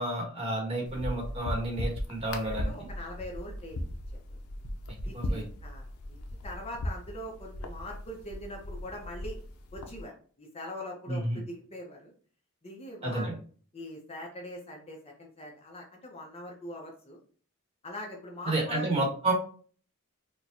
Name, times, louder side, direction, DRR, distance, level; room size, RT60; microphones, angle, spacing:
voice 1, 0.0-2.7 5.1-5.4 11.1-11.4 13.0-13.3 18.5-19.3, right 2 dB, 30° right, -2 dB, 1.1 m, -30 dB
sound 1, 0.9-10.0, left 1 dB, 90° left, 0.5 m, -38 dB
voice 2, 2.5-4.4 5.0-9.4 9.7-12.1 12.6-13.3 13.7-17.2 17.8-18.9, left 1 dB, 30° left, 0 dB, 0.7 m, -42 dB
4.3 x 2.2 x 2.6 m, 0.43 s
head